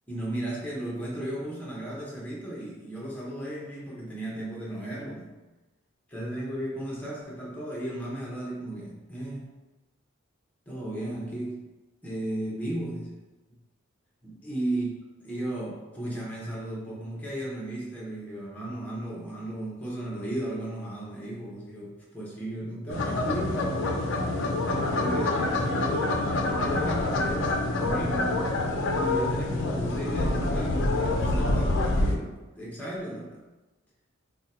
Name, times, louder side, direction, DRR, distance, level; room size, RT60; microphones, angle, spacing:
voice 1, 0.1-5.3 6.1-9.5 10.7-11.6 12.0-13.1 14.2-14.9 15.2-23.8 24.7-28.4 28.9-33.4, right 1 dB, 10° left, -5 dB, 0.7 m, -35 dB
sound 1, 22.9-32.2, left 2 dB, 60° left, 0.4 m, -26 dB
2.7 x 2.1 x 4.1 m, 1.1 s
head